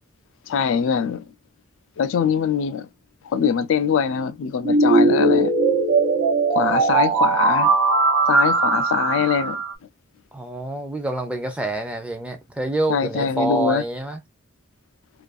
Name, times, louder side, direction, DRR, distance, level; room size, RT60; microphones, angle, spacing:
voice 1, 0.5-1.3 2.0-2.9 3.2-5.5 6.5-7.7 8.3-9.6 12.9-13.8, left 6 dB, 75° left, 0.3 m, -23 dB
sound 1, 4.7-9.7, right 3 dB, 80° right, 0.5 m, -19 dB
voice 2, 10.3-14.2, right 1 dB, 5° right, 0.4 m, -27 dB
2.4 x 2.3 x 2.3 m
head